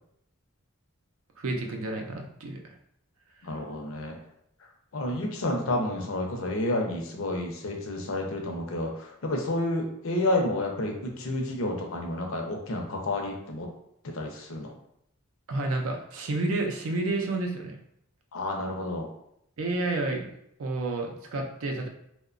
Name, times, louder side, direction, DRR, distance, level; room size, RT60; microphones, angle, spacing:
voice 1, 1.4-2.7 15.5-17.8 19.6-20.3 20.6-21.9, right 2 dB, 80° right, 2 dB, 0.5 m, -30 dB
voice 2, 3.4-4.2 4.9-13.7 14.1-14.7 18.3-19.1, left 1 dB, 70° left, 1 dB, 0.5 m, -30 dB
2.8 x 2.1 x 2.4 m, 0.74 s
head